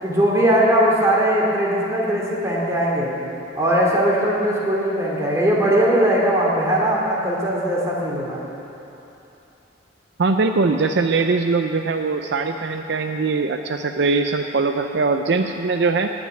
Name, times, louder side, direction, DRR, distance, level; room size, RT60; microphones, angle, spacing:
voice 1, 0.0-3.1 3.5-8.4, right 1 dB, 15° right, -4 dB, 2.6 m, -19 dB
voice 2, 10.2-16.1, right 4 dB, 60° right, 6 dB, 0.5 m, -21 dB
18.0 x 6.2 x 8.9 m, 3.0 s
head